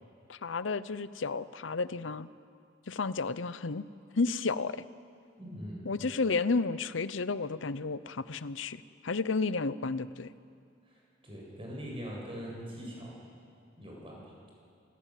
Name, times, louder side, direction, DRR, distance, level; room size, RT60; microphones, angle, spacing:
voice 1, 0.3-2.3 2.9-3.9 4.2-4.8 5.8-10.3, left 4 dB, 80° left, 15 dB, 0.7 m, -32 dB
voice 2, 5.4-5.8 10.9-13.1 13.8-14.3, equal, 30° right, -2 dB, 7.7 m, -42 dB
26.0 x 18.0 x 9.2 m, 2.3 s
head